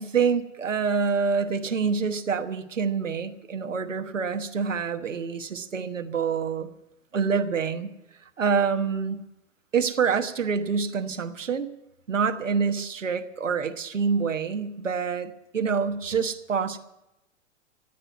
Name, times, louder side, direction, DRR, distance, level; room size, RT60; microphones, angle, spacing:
voice 1, 0.0-6.7 7.1-7.9 8.4-9.2 9.7-11.7 12.1-16.8, right 5 dB, 85° right, 7 dB, 1.2 m, -26 dB
15.0 x 9.1 x 9.2 m, 0.91 s
figure-of-eight pair, 100°, 37 cm